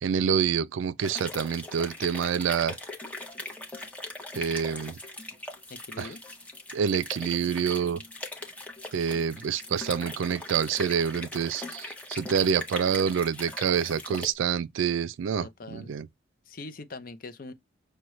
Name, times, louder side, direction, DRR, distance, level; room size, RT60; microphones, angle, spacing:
voice 1, 0.0-2.8 4.3-5.0 6.0-6.1 6.7-8.0 8.9-16.1, right 7 dB, 80° right, 0.4 m, -27 dB
sound 1, 1.0-14.3, left 2 dB, 5° left, 0.7 m, -40 dB
voice 2, 5.7-6.2 15.4-15.9 16.5-17.5, left 3 dB, 45° left, 0.6 m, -42 dB
6.2 x 2.2 x 3.0 m
head